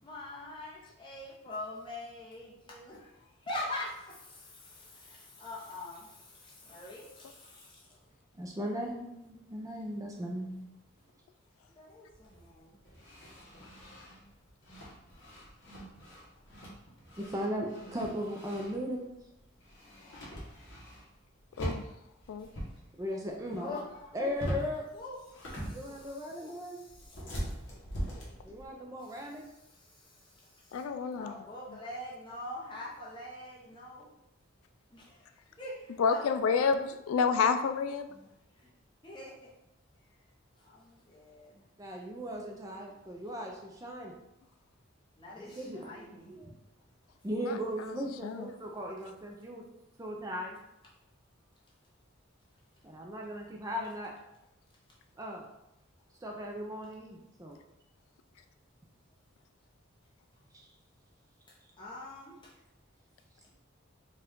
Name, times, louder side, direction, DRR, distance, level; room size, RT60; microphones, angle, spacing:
voice 1, 0.0-8.1 11.7-12.8 16.1-16.2 19.8-20.4 22.6-22.8 23.6-24.5 24.9-27.8 29.0-30.8 31.1-34.1 34.9-36.7 38.1-38.7 39.0-39.5 40.6-41.6 45.1-46.4 61.5-62.6 63.4-63.5, left 1 dB, 25° left, -5 dB, 0.9 m, -45 dB
voice 2, 8.4-10.7 17.2-19.1 23.0-23.7 24.1-24.8 25.7-26.8 28.4-29.5 41.8-44.1 45.3-46.6 47.2-49.6 50.0-50.6 52.8-54.1 55.2-55.4 56.2-57.6 60.5-60.6, equal, 15° right, 0 dB, 0.4 m, -37 dB
sound 1, 12.1-19.1 19.3-21.3 21.5-22.8 23.1-23.6 23.9-24.8 25.2-26.1 26.9-28.7, equal, 55° left, 1.3 m, -42 dB
voice 3, 30.7-31.4 36.0-38.1 47.4-47.9 48.2-48.5, left 5 dB, 85° left, 9 dB, 0.3 m, -29 dB
4.5 x 2.4 x 3.6 m, 0.88 s
head